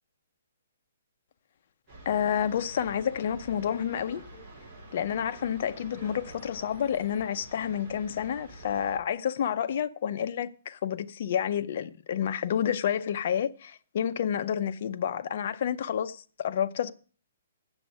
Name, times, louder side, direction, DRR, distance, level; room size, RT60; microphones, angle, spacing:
sound 1, 1.9-9.0, right 1 dB, 10° right, 4.2 m, -48 dB
voice 1, 2.1-4.2 4.9-16.9, left 9 dB, 45° left, 0.7 m, -29 dB
8.0 x 7.1 x 8.2 m
hypercardioid pair, 165°, 0 cm